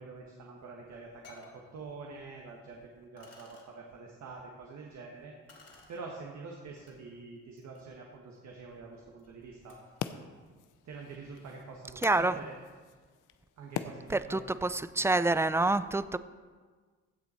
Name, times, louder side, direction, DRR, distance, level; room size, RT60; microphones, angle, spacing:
voice 1, 0.0-5.3 5.9-9.8 10.8-12.6 13.6-14.5, right 4 dB, 65° right, -1 dB, 1.5 m, -46 dB
sound 1, 0.6-0.7 1.2-1.6 2.5-2.6 3.2-3.7 5.5-6.0 6.8-6.9 7.4-10.0, left 3 dB, 55° left, 3.0 m, -58 dB
sound 2, 9.6-14.6, left 10 dB, 85° left, 0.6 m, -44 dB
voice 2, 12.0-12.4 14.1-16.2, right 2 dB, 10° right, 14 dB, 0.3 m, -27 dB
15.5 x 7.0 x 4.4 m, 1.5 s
cardioid pair, 90°, 30 cm